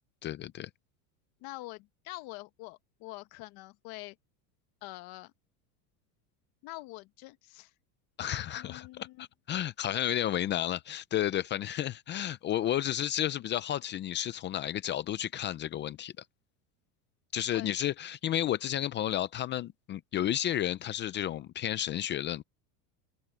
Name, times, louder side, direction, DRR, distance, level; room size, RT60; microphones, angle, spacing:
voice 1, 0.2-0.7 8.2-16.1 17.3-22.4, left 11 dB, 25° left, 0.5 m, -32 dB
voice 2, 1.4-4.1 4.8-5.3 6.6-7.7 8.5-9.3 17.5-17.7, left 20 dB, 50° left, 1.3 m, -45 dB
supercardioid pair, 145°, 47 cm